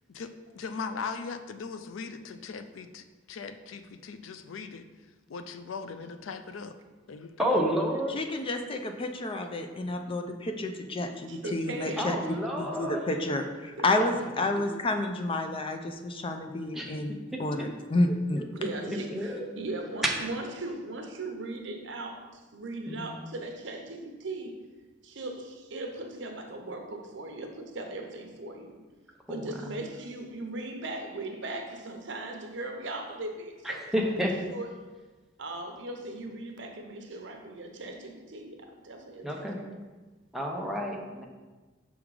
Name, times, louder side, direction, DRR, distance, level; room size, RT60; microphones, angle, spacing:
voice 1, 0.1-4.9 5.3-6.7 7.1-7.5, left 5 dB, 90° left, 9 dB, 0.4 m, -39 dB
voice 2, 7.4-8.2 12.0-13.0 14.0-14.1 16.7-17.0 17.3-17.7 18.3-19.5 20.0-20.1 22.8-23.1 29.3-29.8 33.6-34.3 39.2-39.6 40.3-41.3, equal, ahead, -1 dB, 0.7 m, -31 dB
voice 3, 8.1-12.2 12.6-18.5, left 2 dB, 30° left, 5 dB, 0.4 m, -30 dB
voice 4, 11.3-12.2 13.8-14.0 18.6-24.6 25.0-28.8 29.3-33.8 34.5-34.7 35.4-39.3, right 2 dB, 65° right, 3 dB, 0.8 m, -38 dB
5.9 x 3.7 x 4.8 m, 1.3 s
head